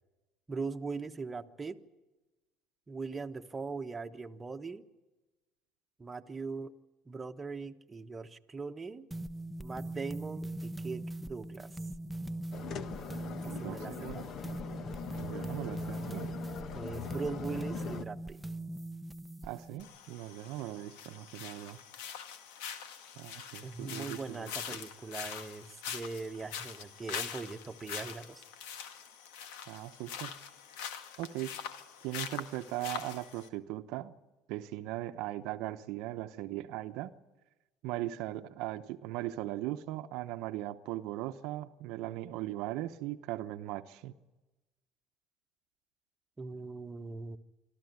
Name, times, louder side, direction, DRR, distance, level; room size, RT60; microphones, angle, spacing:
voice 1, 0.5-1.8 2.9-4.8 6.0-6.7 7.1-9.1 9.6-11.7 13.4-14.3 16.7-18.4 23.6-28.4 46.4-47.4, right 4 dB, 20° right, 6 dB, 1.2 m, -40 dB
sound 1, 9.1-19.8, right 1 dB, 5° right, 0.9 m, -41 dB
sound 2, 12.5-18.0, left 7 dB, 50° left, 1.3 m, -42 dB
voice 2, 13.5-14.3 15.2-16.3 19.4-21.8 23.2-24.8 29.7-30.3 31.2-31.5 32.0-34.1 34.5-37.1 37.8-44.1, right 15 dB, 70° right, 8 dB, 0.8 m, -39 dB
sound 3, 19.8-33.5, left 8 dB, 80° left, 1.7 m, -43 dB
25.5 x 13.5 x 9.4 m, 1.1 s
supercardioid pair, 90°, 0 cm